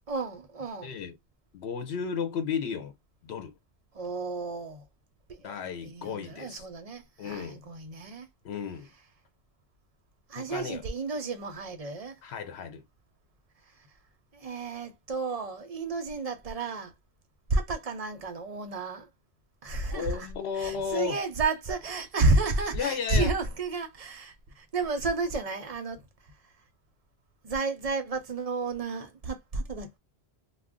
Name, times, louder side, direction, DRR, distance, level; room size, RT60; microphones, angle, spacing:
voice 1, 0.1-1.0 3.9-4.8 5.3-8.3 10.3-12.2 14.3-16.9 17.5-19.1 19.6-20.3 20.6-26.0 27.4-30.0, right 3 dB, 45° right, 0.5 m, -31 dB
voice 2, 0.8-1.2 1.5-2.9 3.2-3.5 5.4-6.7 7.2-7.6 8.4-8.9 10.4-10.8 12.2-12.8 19.8-21.2 22.7-23.3, left 7 dB, 90° left, 0.9 m, -34 dB
2.4 x 2.1 x 3.5 m
omnidirectional pair, 1.1 m